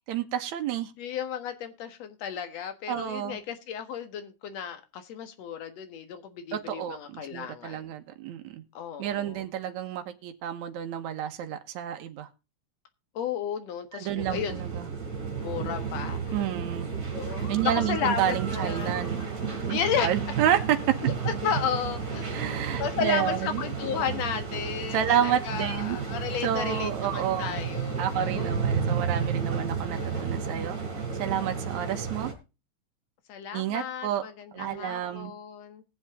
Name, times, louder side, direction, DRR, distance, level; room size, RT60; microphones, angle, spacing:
voice 1, 0.1-0.9 2.9-3.4 6.5-8.6 9.0-12.3 13.9-14.9 16.3-16.9 17.5-19.3 19.7-20.8 22.3-23.6 24.9-26.0 26.4-27.5 28.0-30.8 31.2-32.3 33.5-34.3 34.5-35.3, right 10 dB, 80° right, 2.4 m, -30 dB
voice 2, 1.0-7.9 8.7-9.5 13.1-14.6 15.4-16.4 17.2-19.0 19.7-20.1 21.0-22.3 22.8-28.5 33.3-35.8, left 8 dB, 65° left, 2.5 m, -33 dB
sound 1, 14.2-32.3, right 6 dB, 35° right, 4.1 m, -32 dB
sound 2, 16.6-22.7, right 2 dB, 35° left, 5.6 m, -48 dB
19.0 x 7.4 x 3.6 m
omnidirectional pair, 3.3 m